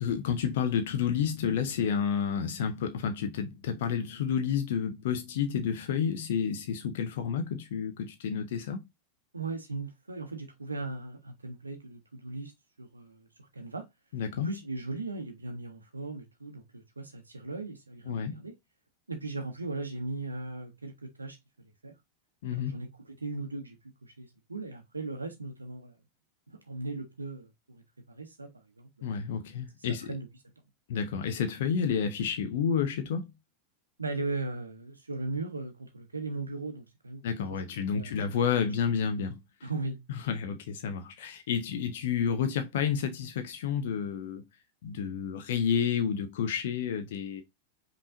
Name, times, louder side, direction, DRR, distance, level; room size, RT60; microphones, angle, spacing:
voice 1, 0.0-8.8 14.1-14.5 18.1-18.4 22.4-22.7 29.0-30.1 30.9-33.3 37.2-39.7 40.1-44.4 44.8-47.4, left 7 dB, 55° left, 0.6 m, -30 dB
voice 2, 9.3-12.5 12.8-13.9 14.4-18.5 19.1-22.0 22.5-26.0 26.5-29.1 29.9-30.3 34.0-37.2 37.5-38.2 39.6-40.0, right 3 dB, 80° right, 0.7 m, -38 dB
5.3 x 3.1 x 2.5 m
figure-of-eight pair, 90°, 0 cm